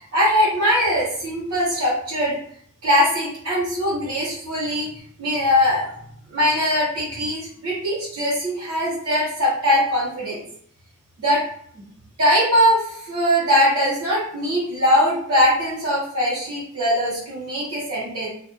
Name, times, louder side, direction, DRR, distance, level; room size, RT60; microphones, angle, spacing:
voice 1, 0.0-2.4 2.8-4.9 5.2-5.9 6.3-10.4 11.2-11.4 11.7-11.8 12.2-18.3, equal, 75° right, -7 dB, 1.1 m, -21 dB
2.3 x 2.1 x 2.9 m, 0.64 s
head